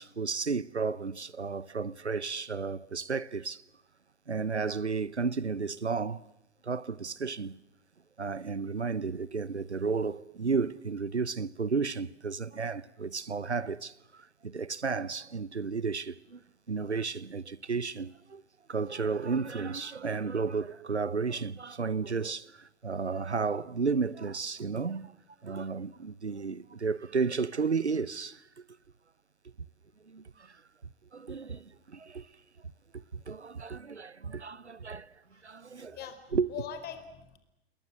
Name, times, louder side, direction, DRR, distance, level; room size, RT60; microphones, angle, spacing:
voice 1, 0.0-3.6 4.3-6.2 6.6-7.6 8.2-16.4 16.7-18.4 18.7-25.1 25.4-28.6 30.0-30.6 31.1-32.3 32.9-35.1 35.4-36.0 36.3-36.5, right 5 dB, 90° right, 0.9 m, -33 dB
voice 2, 35.7-37.4, left 8 dB, 30° left, 4.5 m, -42 dB
29.0 x 21.5 x 7.5 m
figure-of-eight pair, 105°, 33 cm